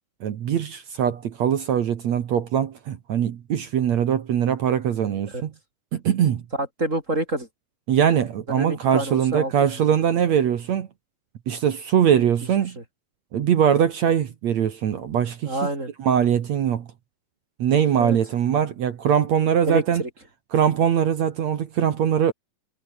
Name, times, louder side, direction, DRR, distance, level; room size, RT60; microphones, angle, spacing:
voice 1, 0.2-5.5 5.9-6.4 7.9-10.9 11.5-12.8 13.3-15.6 16.0-16.9 17.6-20.0 20.5-22.3, right 9 dB, 55° right, 2.2 m, -22 dB
voice 2, 6.5-7.5 8.5-9.5 12.8-12.9 15.4-15.9 18.0-18.2 19.7-20.1, right 1 dB, 20° right, 5.4 m, -27 dB
omnidirectional pair, 4.4 m